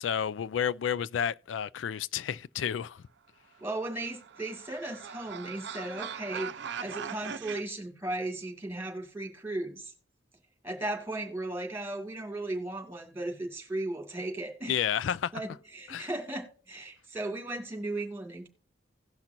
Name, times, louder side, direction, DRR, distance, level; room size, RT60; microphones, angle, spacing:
voice 1, 0.0-3.0 14.7-15.3 15.9-16.1, left 8 dB, 90° left, 0.3 m, -31 dB
voice 2, 3.6-9.9 10.6-14.8 15.3-18.5, right 2 dB, 15° right, 2.2 m, -36 dB
sound 1, 3.7-7.6, right 7 dB, 65° right, 0.6 m, -40 dB
17.5 x 5.9 x 2.6 m
head